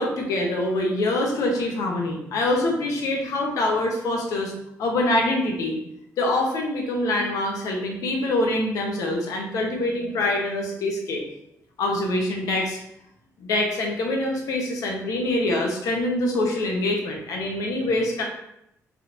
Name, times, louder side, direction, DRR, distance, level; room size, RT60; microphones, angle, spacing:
voice 1, 0.0-4.5 4.8-5.8 6.2-11.2 11.8-12.8 13.4-18.2, left 1 dB, 80° left, 0 dB, 0.8 m, -25 dB
3.5 x 2.9 x 2.5 m, 0.78 s
cardioid pair, 135°, 6 cm